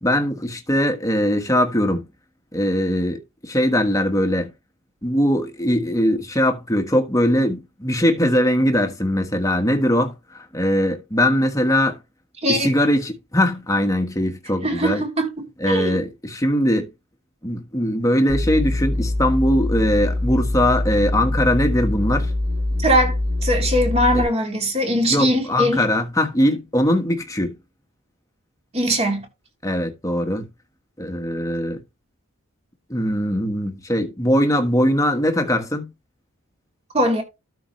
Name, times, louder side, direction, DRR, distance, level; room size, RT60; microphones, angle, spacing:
voice 1, 0.0-2.1 2.5-4.5 5.0-12.0 12.5-15.0 15.6-16.9 17.4-22.3 24.1-24.2 25.1-27.6 29.6-30.5 31.0-31.8 32.9-35.9, equal, 15° left, 1.4 m, -21 dB
voice 2, 12.4-12.7 14.6-16.0 22.8-23.2 23.4-25.8 28.7-29.3 36.9-37.2, equal, 30° right, 2.9 m, -21 dB
sound 1, 18.3-24.2, left 1 dB, 55° right, 6.5 m, -23 dB
12.5 x 5.1 x 3.2 m
head